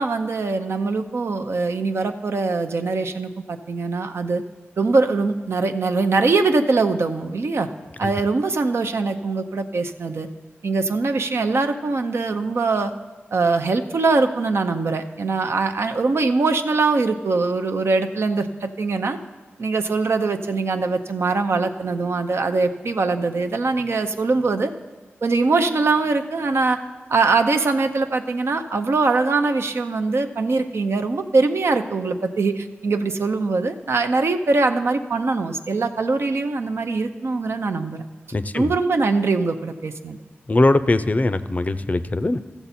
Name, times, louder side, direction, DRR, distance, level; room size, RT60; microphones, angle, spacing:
voice 1, 0.0-4.4 4.8-7.7 8.0-10.3 10.6-12.9 13.3-19.2 19.6-24.7 25.2-26.8 27.1-38.0 38.5-40.2, right 3 dB, 75° right, 7 dB, 0.6 m, -22 dB
voice 2, 38.3-38.7 40.5-42.4, left 2 dB, 35° left, 12 dB, 0.5 m, -20 dB
14.5 x 7.0 x 4.2 m, 1.3 s
cardioid pair, 60°, 4 cm